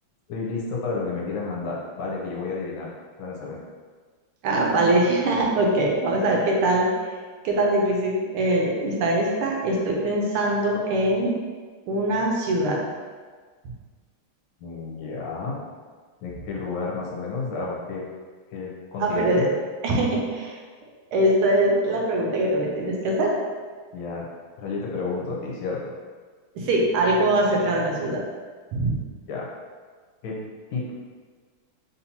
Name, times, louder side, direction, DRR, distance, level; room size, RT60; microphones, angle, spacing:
voice 1, 0.3-2.9 3.2-3.6 14.6-15.6 16.2-18.0 18.5-19.5 23.9-24.3 24.6-25.9 29.3-29.5 30.2-30.4 30.7-30.9, left 4 dB, 70° left, -3 dB, 1.5 m, -31 dB
voice 2, 4.4-6.9 7.4-11.3 11.9-12.8 19.0-19.4 19.8-20.5 21.1-23.4 26.5-28.2 28.7-29.0, right 1 dB, 80° right, -1 dB, 1.6 m, -22 dB
4.2 x 3.8 x 2.8 m, 1.5 s
omnidirectional pair, 2.4 m